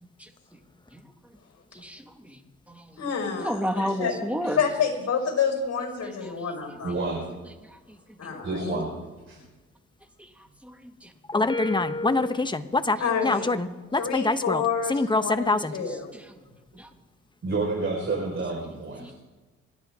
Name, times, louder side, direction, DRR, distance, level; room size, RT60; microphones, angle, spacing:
voice 1, 1.7-2.4 2.7-2.9 3.4-4.6 8.2-8.3 10.6-11.1 16.7-16.9 19.0-19.1, equal, 5° right, 5 dB, 1.7 m, -31 dB
voice 2, 3.0-4.1 4.4-7.0 8.2-8.8 13.0-13.5 14.0-16.1, left 6 dB, 55° left, 0 dB, 5.6 m, -28 dB
voice 3, 6.8-7.2 8.4-8.9 9.3-9.4 17.4-19.1, right 3 dB, 40° right, -2 dB, 4.8 m, -29 dB
voice 4, 11.3-13.0 13.2-14.6 14.9-15.7, left 3 dB, 15° left, 9 dB, 1.0 m, -25 dB
28.5 x 10.5 x 3.7 m, 1.2 s
cardioid pair, 90°, 30 cm